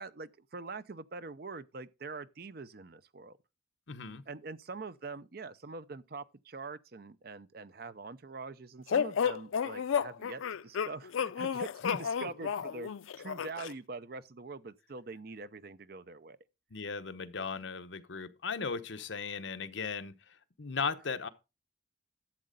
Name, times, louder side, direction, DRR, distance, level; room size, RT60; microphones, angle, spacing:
voice 1, 0.0-3.4 4.3-16.4, right 4 dB, 50° right, 0.6 m, -44 dB
voice 2, 3.9-4.2 11.8-12.0 16.7-20.2 20.6-21.3, left 5 dB, 70° left, 0.9 m, -37 dB
sound 1, 8.9-13.7, left 7 dB, 85° left, 0.4 m, -32 dB
12.0 x 7.6 x 3.9 m
head